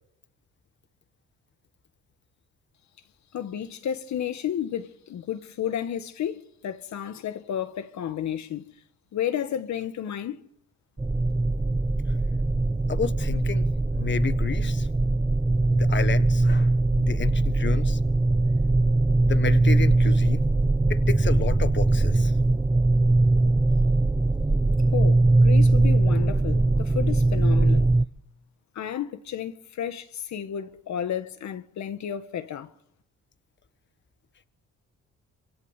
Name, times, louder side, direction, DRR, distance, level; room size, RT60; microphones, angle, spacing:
voice 1, 3.3-8.8 9.1-10.4 24.9-27.9 28.7-32.7, left 9 dB, 65° left, 1.6 m, -32 dB
sound 1, 11.0-28.0, right 2 dB, 15° right, 1.2 m, -21 dB
voice 2, 12.9-13.7 14.0-14.9 15.7-18.0 19.2-20.4 20.9-22.3, left 6 dB, 40° left, 1.5 m, -30 dB
27.0 x 26.5 x 8.3 m
cardioid pair, 90°, 30 cm